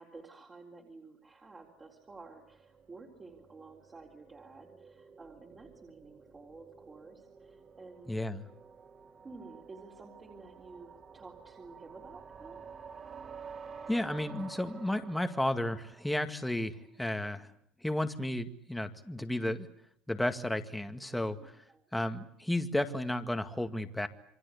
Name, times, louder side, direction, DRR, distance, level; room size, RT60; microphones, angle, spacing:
voice 1, 0.0-8.2 9.2-12.6 21.4-21.9, right 3 dB, 20° right, 0 dB, 3.9 m, -52 dB
sound 1, 1.5-16.7, right 6 dB, 40° right, 4.7 m, -51 dB
voice 2, 8.1-8.4 13.9-17.5 17.8-19.7 20.1-21.4 21.9-24.1, left 1 dB, 5° left, 7 dB, 2.0 m, -33 dB
28.5 x 23.5 x 8.5 m, 0.68 s
cardioid pair, 125°, 0 cm